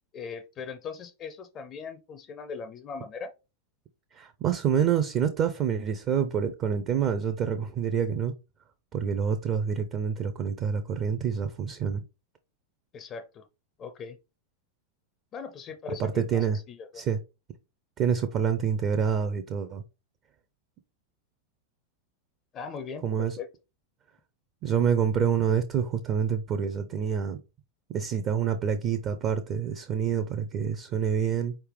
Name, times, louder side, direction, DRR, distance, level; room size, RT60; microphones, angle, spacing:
voice 1, 0.1-3.3 12.9-13.5 13.8-14.2 15.3-16.9 22.5-23.1 23.4-23.5, left 5 dB, 30° left, 0.4 m, -39 dB
voice 2, 4.2-8.3 8.9-12.0 16.0-16.6 16.9-17.2 18.0-19.8 23.0-23.4 24.6-27.4 27.9-31.6, right 7 dB, 35° right, 0.4 m, -27 dB
4.5 x 3.3 x 3.1 m
figure-of-eight pair, 90°, 0 cm